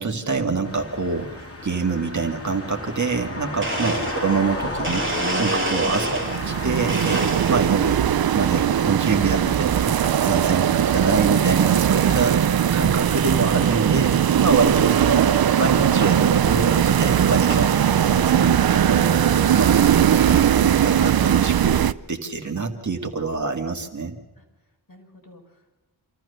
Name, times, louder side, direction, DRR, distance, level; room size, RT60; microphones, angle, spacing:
voice 1, 0.0-5.0 5.4-8.0 8.3-12.4 12.7-15.3 15.6-17.8 18.1-21.8 22.1-24.2, right 4 dB, 45° right, 3 dB, 2.2 m, -25 dB
sound 1, 0.6-6.9, left 1 dB, 35° left, 3.2 m, -32 dB
voice 2, 3.3-3.7 24.3-25.7, left 2 dB, 55° left, 0 dB, 5.9 m, -50 dB
Domestic sounds home sounds, 3.6-6.5 6.9-7.9 8.4-8.9 9.9-10.2 10.8-10.9 11.7-11.8 12.1-12.4 12.9-13.0 13.1-13.2 13.7-13.8 15.1-15.2 16.0-16.2 16.8-17.7, right 1 dB, 30° right, 2.3 m, -28 dB
sound 2, 6.2-21.9, right 9 dB, 65° right, 0.6 m, -19 dB
27.0 x 14.0 x 6.9 m, 1.2 s
wide cardioid pair, 65°, 40 cm